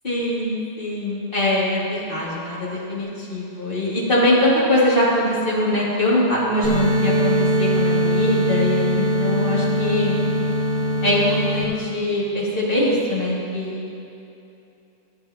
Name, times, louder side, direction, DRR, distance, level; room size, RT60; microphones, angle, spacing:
voice 1, 0.0-10.2 11.0-11.2 11.5-13.9, left 1 dB, 25° left, -9 dB, 2.8 m, -22 dB
sound 1, 6.6-11.6, equal, 10° right, 2.3 m, -21 dB
14.5 x 8.6 x 2.9 m, 2.7 s
omnidirectional pair, 2.3 m